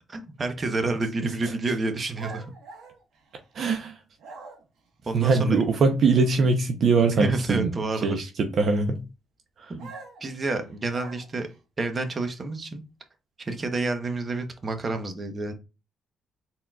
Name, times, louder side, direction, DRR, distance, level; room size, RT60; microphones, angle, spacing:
voice 1, 0.1-2.4 5.1-5.6 7.2-8.2 9.7-9.9 10.2-11.5 11.8-12.8 13.4-15.5, right 3 dB, 35° right, 1.0 m, -29 dB
sound 1, 2.1-3.8 4.2-4.9 9.8-11.6, right 4 dB, 75° right, 1.3 m, -44 dB
voice 2, 3.5-4.0 5.1-7.7 8.0-9.0 9.6-9.7, right 4 dB, 60° right, 0.7 m, -22 dB
4.1 x 3.9 x 2.4 m
cardioid pair, 90°, 0 cm